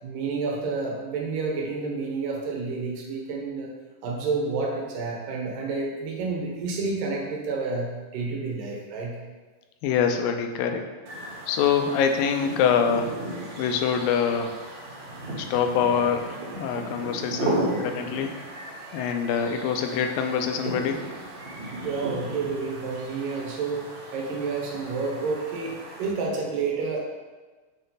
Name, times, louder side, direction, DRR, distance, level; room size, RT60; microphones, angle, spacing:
voice 1, 0.0-3.7 4.0-9.2 15.1-15.3 21.8-27.0, right 4 dB, 80° right, -1 dB, 2.8 m, -30 dB
voice 2, 9.8-10.9 11.5-13.1 13.6-14.5 15.4-18.4 18.9-21.0, left 7 dB, 85° left, 5 dB, 2.4 m, -25 dB
sound 1, 11.1-26.1, right 1 dB, 55° right, 2.7 m, -35 dB
7.5 x 4.4 x 3.9 m, 1.3 s
omnidirectional pair, 3.9 m